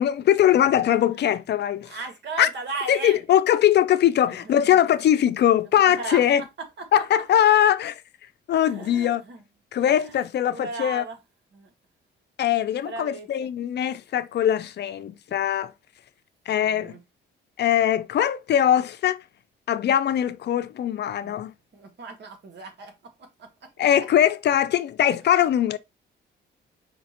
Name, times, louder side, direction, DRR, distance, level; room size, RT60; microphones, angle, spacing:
voice 1, 0.0-2.0 2.4-2.5 2.9-6.4 6.9-8.0 8.5-9.2 9.7-11.0 12.4-15.7 16.5-17.0 17.6-19.2 19.7-21.5 23.8-25.8, left 10 dB, 60° left, 0.5 m, -21 dB
voice 2, 1.8-3.2 4.3-5.0 5.8-6.2 6.6-6.9 8.5-9.4 9.8-11.2 11.5-11.7 12.8-13.3 16.6-17.0 21.2-21.3 21.7-23.7 25.3-25.5, right 3 dB, 60° right, 1.5 m, -37 dB
5.1 x 2.4 x 4.3 m
cardioid pair, 90°, 20 cm